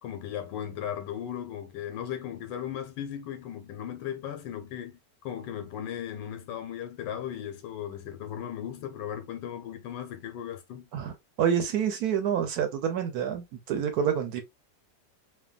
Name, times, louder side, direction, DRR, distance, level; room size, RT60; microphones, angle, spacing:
voice 1, 0.0-10.9, left 10 dB, 85° left, 1.4 m, -37 dB
voice 2, 10.9-14.4, right 8 dB, 70° right, 1.1 m, -28 dB
3.3 x 2.2 x 2.3 m
omnidirectional pair, 1.9 m